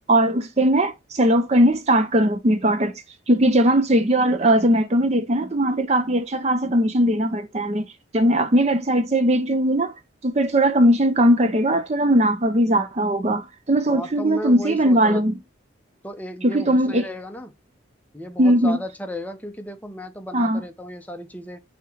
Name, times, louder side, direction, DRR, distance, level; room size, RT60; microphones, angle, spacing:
voice 1, 0.1-7.9 8.1-9.9 10.2-15.3 16.4-17.1 18.4-18.8 20.3-20.6, right 1 dB, 35° right, 0.5 m, -19 dB
voice 2, 13.9-15.2 16.0-17.5 18.1-21.6, equal, 10° left, 0.7 m, -34 dB
6.7 x 2.9 x 4.9 m
head